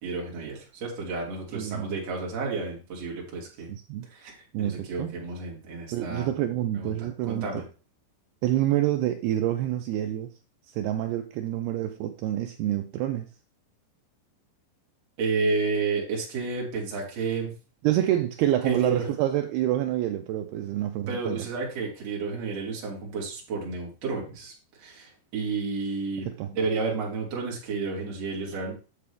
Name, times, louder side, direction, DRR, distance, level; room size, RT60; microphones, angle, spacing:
voice 1, 0.0-3.7 4.1-6.3 6.7-7.6 15.2-17.5 18.6-19.1 21.1-24.5 24.8-28.7, right 4 dB, 40° right, -2 dB, 3.1 m, -31 dB
voice 2, 1.5-2.0 3.7-4.1 4.5-5.2 5.9-7.7 8.4-10.3 10.7-13.3 17.8-21.5 26.2-26.5, right 12 dB, 90° right, 6 dB, 2.2 m, -27 dB
8.5 x 6.7 x 3.3 m, 0.34 s
omnidirectional pair, 5.1 m